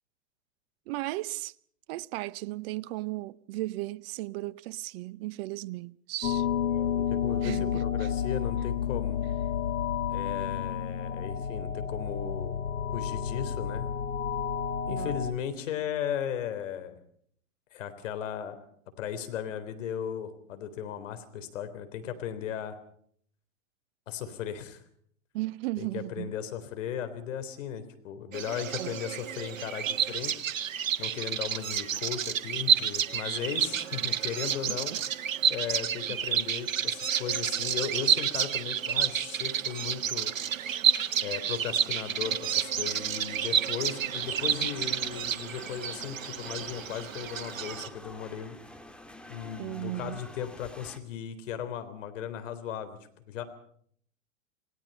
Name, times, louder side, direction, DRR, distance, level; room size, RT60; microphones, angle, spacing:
voice 1, 0.9-1.5 1.9-6.5 7.4-8.1 14.9-15.1 25.3-26.4 28.8-29.0 34.7-35.0 49.6-50.2, right 19 dB, 50° right, 0.8 m, -36 dB
sound 1, 6.2-15.3, left 8 dB, 85° left, 1.7 m, -30 dB
voice 2, 6.7-9.2 10.1-12.6 12.9-13.9 14.9-16.9 17.7-18.6 19.0-22.8 24.1-24.8 25.8-30.4 31.0-34.9 35.5-40.3 41.2-48.6 49.3-53.0 53.3-53.4, left 9 dB, 65° left, 3.8 m, -36 dB
Bird vocalization bird call bird song, 28.3-47.9, right 8 dB, 75° right, 1.6 m, -30 dB
sound 2, 44.2-51.0, left 1 dB, 5° left, 1.9 m, -48 dB
29.0 x 18.5 x 5.5 m
hypercardioid pair, 105°, 40 cm